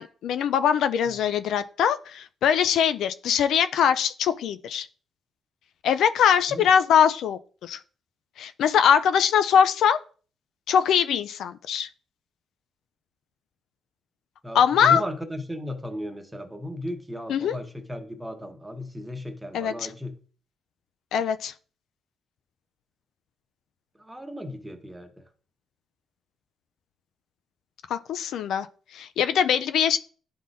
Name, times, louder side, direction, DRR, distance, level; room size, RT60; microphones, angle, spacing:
voice 1, 0.0-4.9 5.8-7.8 8.4-10.0 10.7-11.9 14.5-15.0 17.3-17.6 19.5-19.9 21.1-21.5 27.9-28.7 28.9-30.0, left 8 dB, 75° left, 0.4 m, -22 dB
voice 2, 14.4-20.2 24.0-25.3, left 1 dB, 10° right, 1.1 m, -35 dB
11.0 x 3.7 x 2.6 m
cardioid pair, 90°, 0 cm